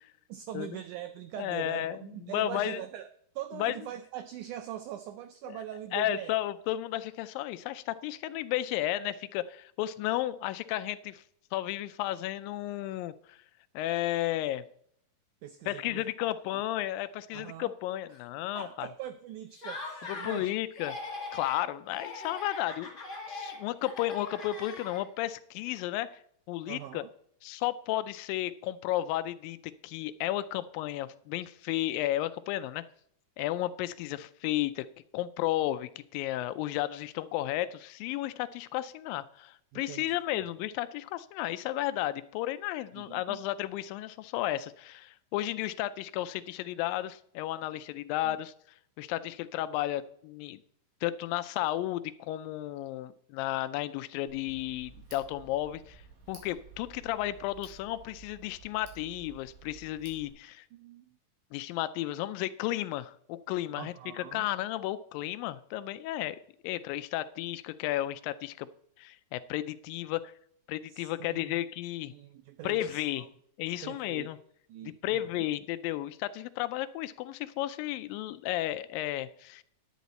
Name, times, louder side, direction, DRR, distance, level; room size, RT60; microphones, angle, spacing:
voice 1, 0.3-3.1 3.3-6.3 15.4-16.6 17.3-17.7 18.5-20.5 26.7-27.1 39.7-40.4 42.9-43.4 48.2-48.4 60.7-61.2 63.8-64.5 70.9-71.5 72.1-73.3 73.8-74.3 74.7-75.4, right 11 dB, 85° right, 11 dB, 1.7 m, -42 dB
voice 2, 1.4-2.8 3.5-3.8 5.5-5.6 5.9-11.2 11.5-13.4 13.7-14.6 15.7-18.9 20.1-21.0 21.3-22.9 23.3-26.2 26.5-27.0 27.4-32.8 33.4-34.9 35.1-48.5 49.0-50.6 51.0-56.0 56.3-60.7 61.5-68.7 69.0-70.3 70.7-72.1 72.6-73.3 73.6-74.4 74.8-79.6, left 14 dB, 85° left, 13 dB, 2.2 m, -33 dB
Laughter, 19.5-20.5 20.7-21.6 21.9-25.3, left 3 dB, 25° left, 2.2 m, -41 dB
Tick, 54.3-60.3, right 5 dB, 70° right, 3.6 m, -53 dB
10.0 x 9.3 x 4.1 m, 0.67 s
omnidirectional pair, 4.1 m